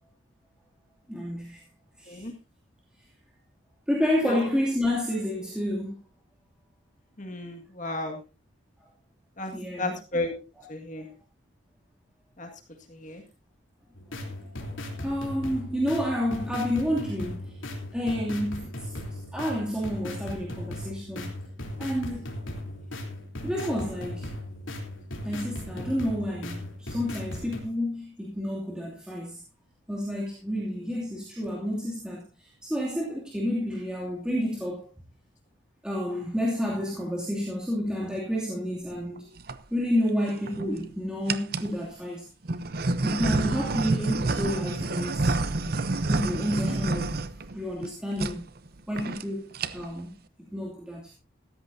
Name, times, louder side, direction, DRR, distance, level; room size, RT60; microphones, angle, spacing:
voice 1, 1.1-1.6 2.0-2.3 3.9-6.0 9.5-10.0 10.5-10.7 14.2-17.6 17.9-21.3 21.8-22.3 23.4-24.3 25.2-29.4 29.9-34.9 35.8-39.3 39.7-42.3 43.0-45.3 46.1-47.2 47.5-48.5 48.9-51.1, equal, 5° right, 2.6 m, -30 dB
voice 2, 7.2-8.2 9.4-9.5 9.8-10.3 10.7-11.1 12.4-12.5 13.0-13.2, left 2 dB, 40° left, 1.9 m, -33 dB
sound 1, 14.0-27.6, left 1 dB, 75° left, 3.3 m, -37 dB
sound 2, 39.2-39.6 40.3-40.8 41.3-41.7 42.5-47.9 48.2-48.4 48.7-48.8 49.0-49.2 49.5-50.0, right 2 dB, 50° right, 0.8 m, -28 dB
16.5 x 13.5 x 2.7 m
head